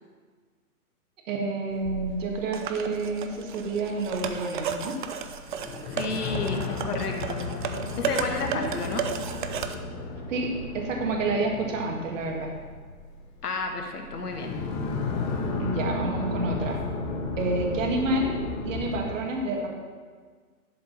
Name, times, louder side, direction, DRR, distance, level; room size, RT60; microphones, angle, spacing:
voice 1, 1.3-4.9 8.5-8.7 10.3-12.5 15.6-16.8 17.4-18.4 18.6-19.7, right 2 dB, 55° right, 1 dB, 1.9 m, -29 dB
sound 1, 1.7-19.0, left 3 dB, 15° left, 0.6 m, -33 dB
sound 2, 2.5-9.7, right 7 dB, 35° right, 0.5 m, -34 dB
voice 2, 5.9-7.4 8.0-9.0 13.4-14.5, left 3 dB, 80° left, 3 dB, 1.5 m, -31 dB
11.5 x 6.6 x 4.1 m, 1.5 s
hypercardioid pair, 135°, 46 cm